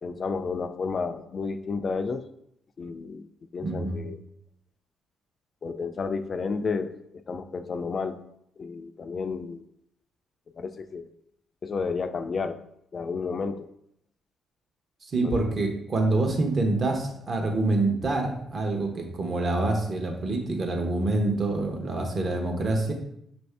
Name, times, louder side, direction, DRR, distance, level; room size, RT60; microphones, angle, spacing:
voice 1, 0.0-2.3 2.8-3.3 3.5-4.2 5.6-7.0 7.3-8.2 8.6-9.6 10.6-11.1 11.6-12.6 12.9-13.7 15.2-15.3, left 4 dB, 45° left, 9 dB, 0.3 m, -31 dB
voice 2, 3.6-4.0 15.1-22.9, right 2 dB, 40° right, 3 dB, 0.8 m, -26 dB
5.5 x 2.6 x 3.3 m, 0.75 s
cardioid pair, 90°, 0 cm